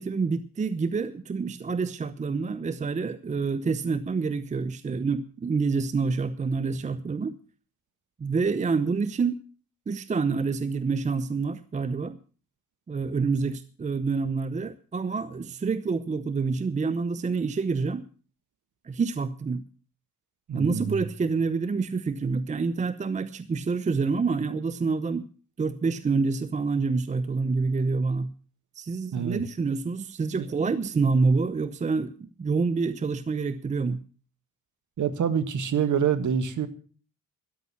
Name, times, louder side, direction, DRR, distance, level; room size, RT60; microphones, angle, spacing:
voice 1, 0.0-7.3 8.2-9.4 9.9-12.2 12.9-18.0 18.8-19.6 20.5-25.3 25.6-28.3 28.7-34.0, right 4 dB, 15° right, 15 dB, 0.6 m, -27 dB
voice 2, 20.5-21.1 29.1-29.4 30.3-30.8 35.0-36.7, right 7 dB, 40° right, 11 dB, 1.6 m, -27 dB
13.5 x 11.0 x 6.0 m, 0.40 s
figure-of-eight pair, 50°, 44 cm